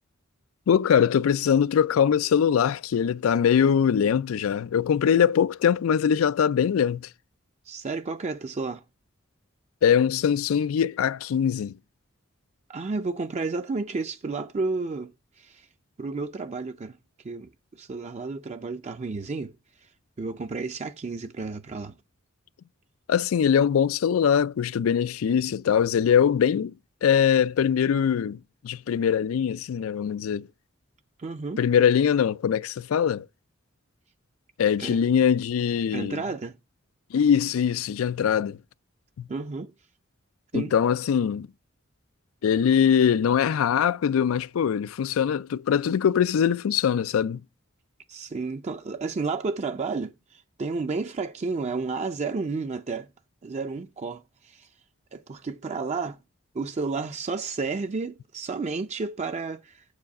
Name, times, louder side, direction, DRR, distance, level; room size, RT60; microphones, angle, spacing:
voice 1, 0.7-7.1 9.8-11.7 23.1-26.7 27.0-30.5 31.6-33.3 34.6-36.2 37.1-38.6 39.2-39.3 40.5-41.5 42.4-47.4, left 8 dB, 90° left, 0.4 m, -22 dB
voice 2, 7.6-8.8 12.7-15.7 16.0-17.0 17.2-19.9 20.2-21.9 31.2-31.6 34.8-35.0 35.9-36.6 39.3-39.7 40.5-40.7 48.1-53.1 53.4-54.7 55.1-56.2 56.5-59.8, right 4 dB, 35° right, 0.4 m, -32 dB
7.3 x 4.9 x 5.2 m
head